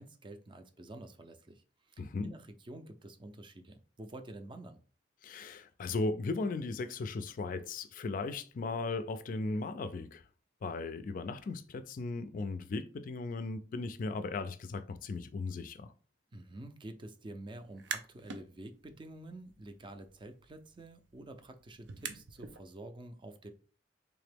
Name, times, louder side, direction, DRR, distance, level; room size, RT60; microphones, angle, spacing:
voice 1, 0.0-4.8 16.3-23.5, right 1 dB, 30° right, 0.4 m, -49 dB
voice 2, 2.0-2.3 5.2-10.2 10.6-15.9, left 3 dB, 50° left, 0.3 m, -37 dB
sound 1, 17.6-18.4 18.8-22.6, right 6 dB, 80° right, 0.5 m, -45 dB
3.5 x 2.9 x 3.4 m
head